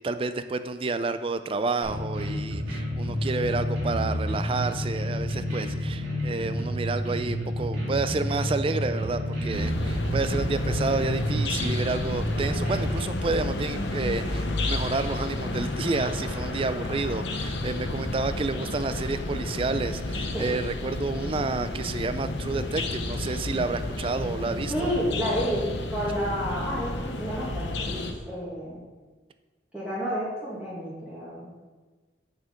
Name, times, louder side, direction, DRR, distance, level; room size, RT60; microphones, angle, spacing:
voice 1, 0.0-24.9, right 3 dB, 30° right, 11 dB, 0.3 m, -30 dB
sound 1, 1.8-13.0, equal, 85° right, 2.6 m, -29 dB
sound 2, 9.5-28.1, left 2 dB, 70° left, 0.8 m, -31 dB
voice 2, 24.7-28.8 29.7-31.5, equal, 5° right, -9 dB, 1.8 m, -30 dB
7.4 x 6.5 x 5.1 m, 1.3 s
head